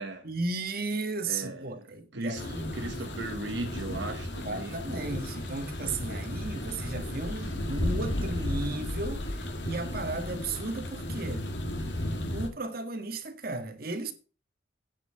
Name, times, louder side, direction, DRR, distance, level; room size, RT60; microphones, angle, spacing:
voice 1, 0.2-2.7 4.2-11.5 12.3-14.1, right 2 dB, 50° right, 1.7 m, -35 dB
voice 2, 1.2-1.8 2.1-2.4 2.7-4.8 7.4-7.5, right 2 dB, 70° right, 1.1 m, -37 dB
sound 1, 2.4-12.5, left 1 dB, 65° left, 2.0 m, -34 dB
sound 2, 2.7-12.5, left 1 dB, 20° left, 3.0 m, -56 dB
9.6 x 5.7 x 8.2 m
head